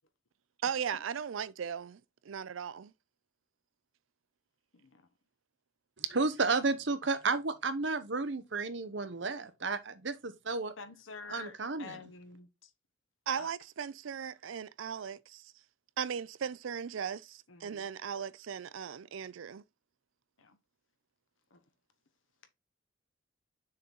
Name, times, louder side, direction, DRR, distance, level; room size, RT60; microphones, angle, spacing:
voice 1, 0.6-2.0 2.3-2.9 13.3-15.4 16.0-19.6, right 7 dB, 80° right, 0.4 m, -37 dB
voice 2, 6.0-10.7 11.3-12.0, right 4 dB, 65° right, 0.9 m, -32 dB
voice 3, 10.8-12.5 13.4-13.5 17.5-17.9 20.4-20.6 21.5-21.6, left 4 dB, 80° left, 1.1 m, -48 dB
6.5 x 3.9 x 4.2 m
head